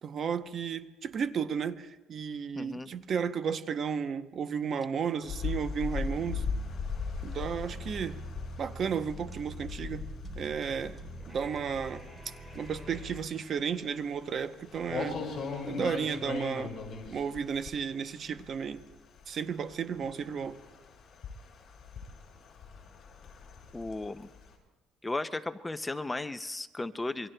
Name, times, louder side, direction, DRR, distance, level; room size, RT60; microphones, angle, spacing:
voice 1, 0.0-6.4 7.2-8.2 8.6-10.1 10.4-11.0 11.3-12.0 12.5-15.2 15.7-16.7 17.1-18.8 19.3-20.6, right 7 dB, 40° right, 0.7 m, -33 dB
voice 2, 2.6-2.9 23.7-24.3 25.0-27.3, left 2 dB, 10° left, 0.5 m, -35 dB
sound 1, 5.2-18.8 19.2-24.5, left 5 dB, 35° left, 6.0 m, -39 dB
sound 2, 6.0-13.2, right 1 dB, 10° right, 3.4 m, -44 dB
27.0 x 24.0 x 2.2 m
cardioid pair, 135°, 0 cm